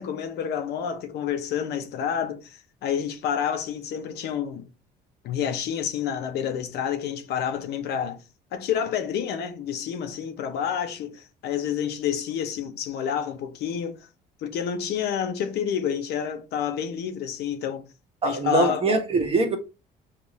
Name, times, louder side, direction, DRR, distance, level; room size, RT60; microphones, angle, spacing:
voice 1, 0.0-4.7 5.2-8.2 8.5-14.1 14.4-17.8 18.2-18.8, left 8 dB, 75° left, 0.7 m, -29 dB
voice 2, 18.2-19.6, right 3 dB, 35° right, 1.1 m, -22 dB
5.3 x 2.5 x 3.1 m
cardioid pair, 110°, 17 cm